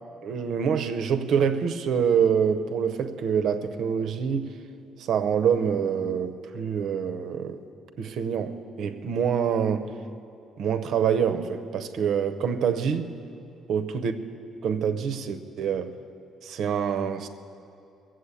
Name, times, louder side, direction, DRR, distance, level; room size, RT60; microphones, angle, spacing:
voice 1, 0.2-4.5 5.0-7.6 8.0-9.9 10.6-13.1 13.7-14.1 14.6-15.9 16.4-17.3, right 7 dB, 55° right, 0.7 m, -26 dB
17.5 x 7.7 x 8.2 m
cardioid pair, 180°, 0 cm